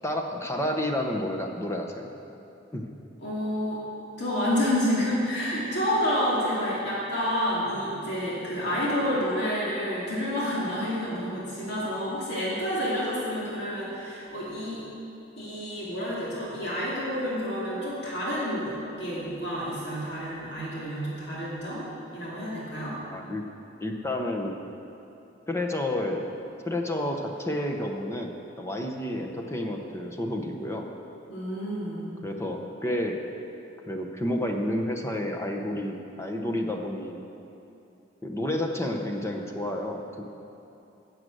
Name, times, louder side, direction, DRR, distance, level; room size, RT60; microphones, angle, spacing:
voice 1, 0.0-2.1 2.7-2.9 23.1-23.4 23.8-24.5 25.5-26.3 26.6-30.9 32.2-33.2 33.8-37.2 38.2-40.2, left 1 dB, 15° left, 2 dB, 0.9 m, -30 dB
voice 2, 3.2-3.8 4.2-14.8 15.4-21.9 22.1-23.0 31.3-32.2, equal, 60° left, -7 dB, 2.6 m, -29 dB
11.5 x 7.7 x 7.9 m, 2.8 s
head